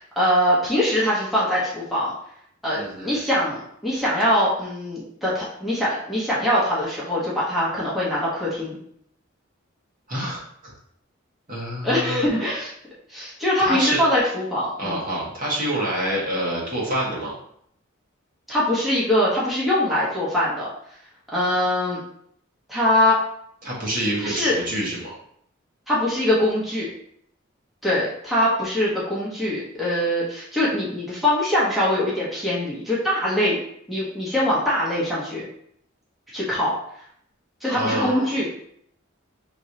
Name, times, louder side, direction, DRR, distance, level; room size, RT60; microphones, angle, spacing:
voice 1, 0.2-2.1 2.6-8.8 11.8-12.7 13.1-15.0 18.5-20.7 21.3-22.0 22.7-23.2 24.2-24.6 25.9-26.9 27.8-33.6 33.9-35.5 36.3-36.7 37.6-38.5, left 1 dB, ahead, -8 dB, 1.0 m, -22 dB
voice 2, 2.8-3.2 10.1-10.7 11.5-12.2 13.6-14.0 14.8-17.3 23.6-25.1 37.7-38.3, right 1 dB, 45° right, -5 dB, 1.4 m, -27 dB
5.3 x 3.1 x 2.7 m, 0.68 s
head